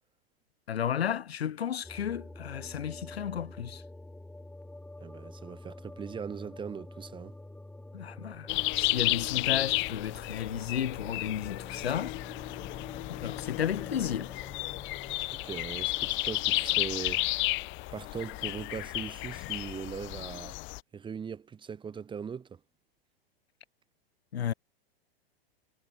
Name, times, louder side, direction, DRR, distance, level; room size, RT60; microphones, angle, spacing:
voice 1, 0.7-3.8 7.9-12.2 13.1-14.3 24.3-24.5, left 9 dB, 80° left, 4.2 m, -33 dB
sound 1, 1.8-17.8, left 1 dB, 5° left, 5.5 m, -48 dB
voice 2, 5.0-7.3 15.2-17.3 17.9-20.5 20.9-22.6, right 6 dB, 15° right, 1.7 m, -40 dB
sound 2, 8.5-20.8, left 23 dB, 40° left, 2.0 m, -32 dB
hypercardioid pair, 120°, 30 cm